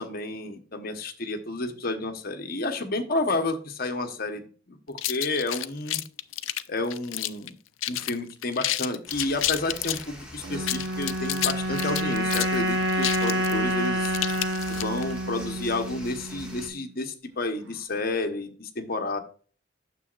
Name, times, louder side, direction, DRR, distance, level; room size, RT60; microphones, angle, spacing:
voice 1, 0.0-6.0 6.7-7.5 7.9-14.2 14.7-19.2, left 2 dB, 50° left, 6 dB, 1.2 m, -31 dB
sound 1, 5.0-7.5 7.8-8.1 8.4-10.1 10.5-15.1, left 14 dB, 90° left, 0.5 m, -30 dB
sound 2, 9.1-16.7, equal, 5° right, 2.0 m, -44 dB
sound 3, 10.4-16.8, right 1 dB, 85° right, 1.4 m, -28 dB
9.2 x 7.0 x 2.5 m, 0.40 s
head